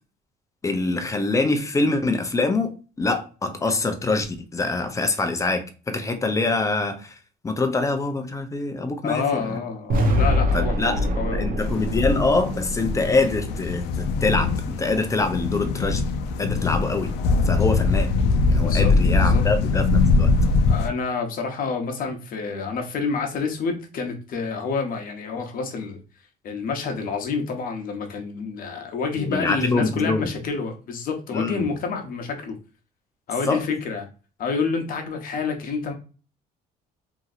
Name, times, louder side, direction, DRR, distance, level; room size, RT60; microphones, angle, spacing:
voice 1, 0.6-7.2 7.4-9.6 10.5-16.1 16.4-17.1 17.4-18.1 18.5-20.3 29.2-30.3 31.3-31.7 33.5-33.6, left 3 dB, 20° left, 0.5 m, -24 dB
voice 2, 9.0-11.5 18.6-19.5 20.7-26.0 26.4-32.6 33.3-34.0 34.4-35.9, left 5 dB, 55° left, 0.9 m, -28 dB
sound 1, 9.9-14.0, equal, 55° right, 0.7 m, -25 dB
sound 2, 11.6-20.9, left 4 dB, 85° left, 0.5 m, -22 dB
2.9 x 2.7 x 2.4 m
cardioid pair, 110°, 17 cm